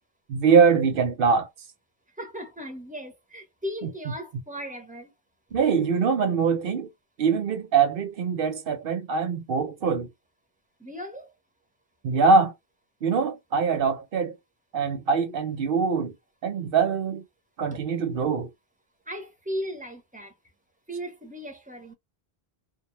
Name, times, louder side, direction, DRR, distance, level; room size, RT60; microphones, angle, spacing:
voice 1, 0.3-1.5 3.8-4.1 5.5-6.9 7.2-10.1 12.0-12.5 13.0-14.4 14.7-16.1 16.4-17.2 17.6-18.5, right 5 dB, 65° right, 0.8 m, -23 dB
voice 2, 2.2-5.1 10.8-11.3 17.7-17.8 19.1-20.3 20.9-21.9, equal, 10° right, 0.6 m, -36 dB
2.2 x 2.1 x 3.0 m
omnidirectional pair, 1.0 m